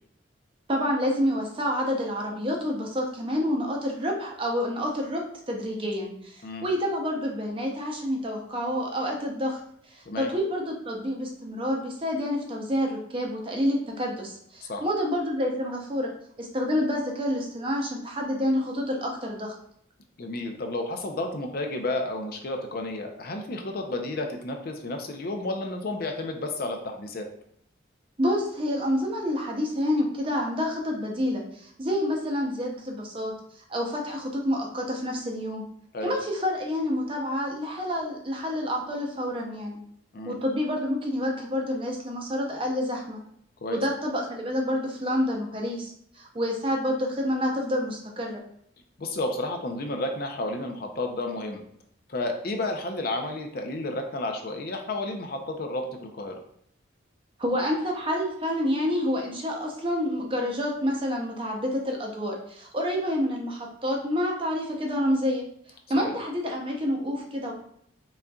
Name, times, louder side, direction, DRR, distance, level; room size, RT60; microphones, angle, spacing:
voice 1, 0.7-16.1 16.4-19.5 28.2-33.3 33.7-35.6 36.0-39.8 40.3-43.2 43.7-48.4 57.4-65.4 65.9-67.5, equal, 25° right, 0 dB, 0.6 m, -28 dB
voice 2, 20.2-27.3 35.9-36.1 40.1-40.4 43.6-43.8 49.0-51.6 52.1-56.4 65.9-66.2, left 2 dB, 50° left, 4 dB, 0.5 m, -31 dB
4.0 x 3.6 x 2.3 m, 0.68 s
head